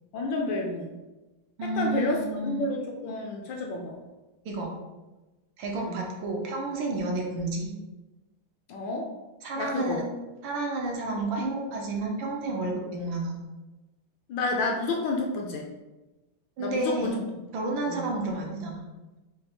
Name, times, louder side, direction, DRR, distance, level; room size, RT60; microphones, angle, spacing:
voice 1, 0.1-1.0 1.7-4.0 5.7-6.0 8.7-9.1 9.6-10.0 14.3-15.7 16.6-17.2 17.9-18.0, left 2 dB, 75° left, 1 dB, 1.2 m, -30 dB
voice 2, 1.6-2.6 4.4-4.7 5.6-7.7 9.4-10.0 10.4-13.4 16.6-17.2 17.5-18.8, right 2 dB, 70° right, 0 dB, 1.4 m, -31 dB
6.5 x 2.3 x 2.9 m, 1.1 s
omnidirectional pair, 2.3 m